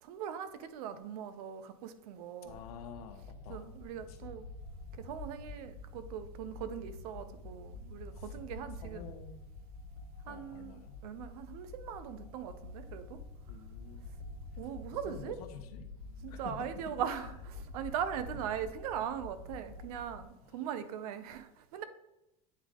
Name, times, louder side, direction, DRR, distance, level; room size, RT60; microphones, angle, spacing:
voice 1, 0.0-2.6 3.5-4.5 5.0-9.1 10.3-13.2 14.6-15.4 16.2-21.8, right 9 dB, 80° right, 11 dB, 0.7 m, -40 dB
voice 2, 2.4-3.7 4.1-4.3 8.2-8.3 8.8-9.5 10.2-11.0 13.5-14.2 15.1-15.9 16.3-17.3 18.3-18.7 20.5-20.6, left 8 dB, 80° left, 7 dB, 0.9 m, -49 dB
sound 1, 2.4-20.3, left 3 dB, 55° left, 1.4 m, -48 dB
8.6 x 3.5 x 3.7 m, 0.89 s
supercardioid pair, 150°, 19 cm